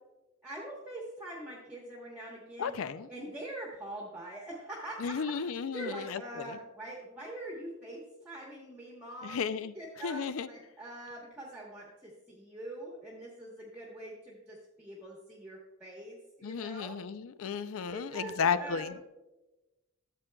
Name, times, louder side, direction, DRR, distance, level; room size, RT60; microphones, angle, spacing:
voice 1, 0.4-2.7 3.1-5.3 5.7-17.0 17.8-19.0, right 1 dB, 5° right, -3 dB, 1.1 m, -44 dB
voice 2, 2.6-3.1 5.0-6.6 9.2-9.7 10.0-10.5 16.4-19.0, left 6 dB, 85° left, 14 dB, 0.4 m, -34 dB
12.5 x 7.6 x 2.3 m, 1.1 s
head